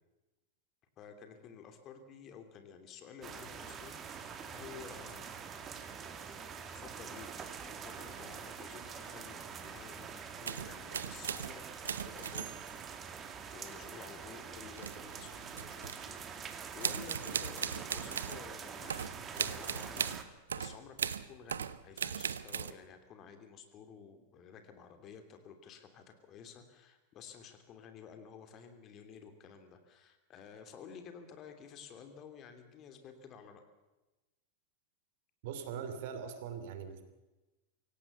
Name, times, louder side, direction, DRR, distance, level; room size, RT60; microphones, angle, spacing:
voice 1, 1.0-4.2 4.5-5.4 6.7-12.6 13.5-33.6, left 6 dB, 35° left, 7 dB, 3.0 m, -52 dB
sound 1, 3.2-20.2, right 6 dB, 25° right, 2.2 m, -45 dB
sound 2, 10.4-11.6 11.8-12.8 14.8-16.1 16.8-18.4 18.9-22.7, right 7 dB, 70° right, 0.9 m, -38 dB
voice 2, 35.4-37.0, right 7 dB, 50° right, 9 dB, 2.9 m, -41 dB
25.0 x 17.0 x 6.8 m, 1.1 s
figure-of-eight pair, 90°, 0 cm